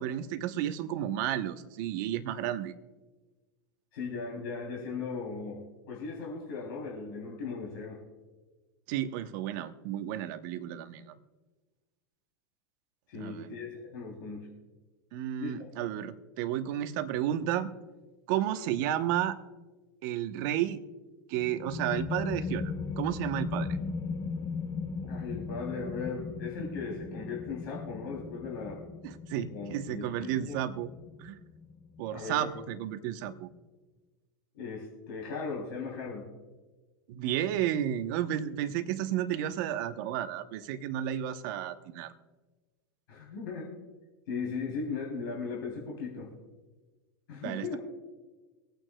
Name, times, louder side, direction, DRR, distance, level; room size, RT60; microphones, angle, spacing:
voice 1, 0.0-2.7 8.9-11.1 13.1-13.5 15.1-17.7 18.3-19.4 20.0-20.8 21.3-23.7 29.0-30.9 31.2-31.4 32.0-33.5 37.1-42.1 47.4-47.8, right 11 dB, 60° right, 9 dB, 0.9 m, -32 dB
voice 2, 3.9-5.6 5.9-8.0 13.1-14.5 15.4-15.7 25.0-28.8 29.3-30.6 32.1-32.4 34.5-36.3 43.1-43.7 44.3-46.3 47.3-47.8, left 4 dB, 70° left, -3 dB, 3.1 m, -37 dB
sound 1, 21.3-32.7, left 4 dB, 30° left, 0.8 m, -38 dB
24.0 x 9.1 x 2.3 m, 1.3 s
hypercardioid pair, 105°, 12 cm